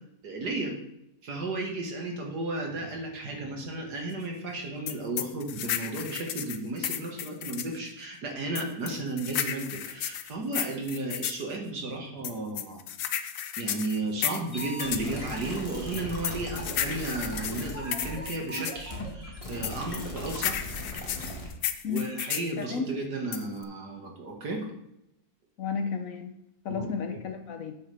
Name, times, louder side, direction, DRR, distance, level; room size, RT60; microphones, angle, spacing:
voice 1, 0.2-0.7 1.2-12.8 13.6-20.6 21.9-24.7 26.7-26.8, right 2 dB, 75° right, 0 dB, 2.3 m, -34 dB
sound 1, 4.9-7.8 8.6-11.4 12.2-15.1 15.9-18.8 19.6-22.5 23.3-23.6, left 10 dB, 80° left, 1.3 m, -33 dB
sound 2, 14.5-21.5, left 1 dB, 20° left, 1.6 m, -38 dB
voice 2, 25.6-26.4 26.6-27.7, left 6 dB, 60° left, 7 dB, 1.1 m, -32 dB
9.4 x 8.1 x 3.5 m, 0.83 s
omnidirectional pair, 1.8 m